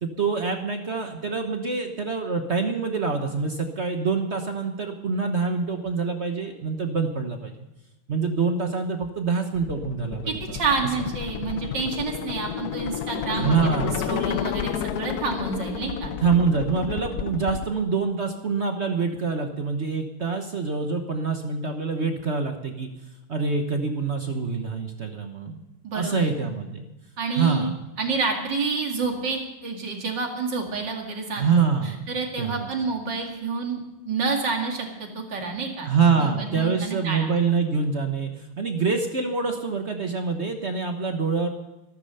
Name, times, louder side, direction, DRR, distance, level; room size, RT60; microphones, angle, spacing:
voice 1, 0.0-7.5 8.1-10.6 11.0-11.1 13.3-14.1 16.2-22.9 23.3-25.6 25.9-26.8 27.3-27.7 31.3-32.0 32.4-32.7 35.8-41.5, right 5 dB, 40° right, 5 dB, 1.1 m, -25 dB
sound 1, 9.6-17.7, left 10 dB, 75° left, 0.8 m, -31 dB
voice 2, 10.3-13.7 14.1-16.1 25.8-26.3 27.2-27.7 28.0-31.6 32.1-37.3, right 4 dB, 55° right, 2 dB, 2.9 m, -29 dB
14.0 x 13.0 x 5.5 m, 1.0 s
omnidirectional pair, 2.3 m